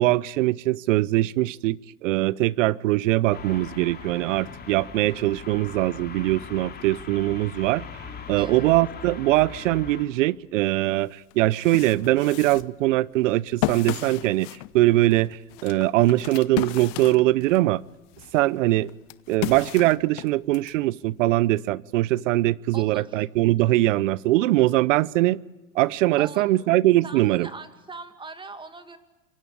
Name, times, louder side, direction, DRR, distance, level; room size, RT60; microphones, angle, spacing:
voice 1, 0.0-7.8 8.3-14.5 14.7-15.4 15.6-17.8 18.3-18.9 19.3-25.4 25.7-27.5, right 17 dB, 65° right, 22 dB, 0.9 m, -22 dB
sound 1, 3.3-10.1, left 6 dB, 25° left, 3.1 m, -40 dB
voice 2, 8.4-8.7 22.7-23.2 26.2-26.5 27.0-29.0, right 3 dB, 10° right, 9 dB, 2.4 m, -41 dB
sound 2, 10.8-10.9 11.3-17.7 18.1-20.7, left 18 dB, 45° left, 1.0 m, -34 dB
27.0 x 23.5 x 8.7 m, 1.1 s
hypercardioid pair, 110°, 40 cm